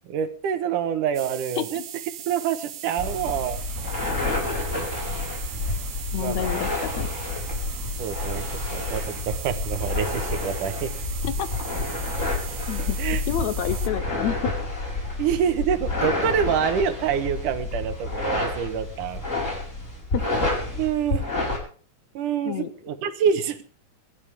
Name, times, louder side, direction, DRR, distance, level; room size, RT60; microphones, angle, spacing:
voice 1, 0.1-1.8 2.3-3.6 6.2-6.6 8.0-10.9 13.0-13.2 15.2-19.2 20.8-21.3 22.1-23.6, right 8 dB, 85° right, 9 dB, 2.8 m, -26 dB
sound 1, 1.1-13.9, right 10 dB, 65° right, 2.1 m, -39 dB
sound 2, 3.0-21.6, left 2 dB, 20° left, 5.1 m, -29 dB
voice 2, 6.1-7.1 11.2-11.5 12.7-13.0 13.3-14.5 20.1-20.2 22.5-22.7, left 10 dB, 70° left, 12 dB, 2.0 m, -29 dB
25.5 x 12.0 x 3.6 m, 0.42 s
omnidirectional pair, 3.6 m